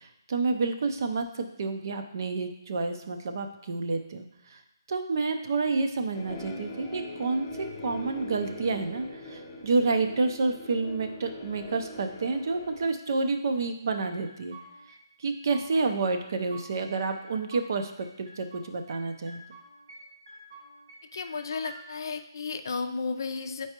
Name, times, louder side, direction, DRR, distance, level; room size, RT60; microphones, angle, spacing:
voice 1, 0.0-4.6 4.9-14.6 15.2-19.4, right 3 dB, 50° right, 6 dB, 0.6 m, -29 dB
sound 1, 6.1-12.9, left 1 dB, 20° left, 0.7 m, -41 dB
sound 2, 14.0-15.0 15.3-16.0 16.2-17.7 18.0-19.0 19.3-20.0 20.3-21.8, right 2 dB, 85° right, 2.3 m, -49 dB
voice 2, 21.1-23.7, left 4 dB, 55° left, 8 dB, 0.5 m, -33 dB
7.6 x 4.6 x 2.9 m, 0.87 s
hypercardioid pair, 160°, 2 cm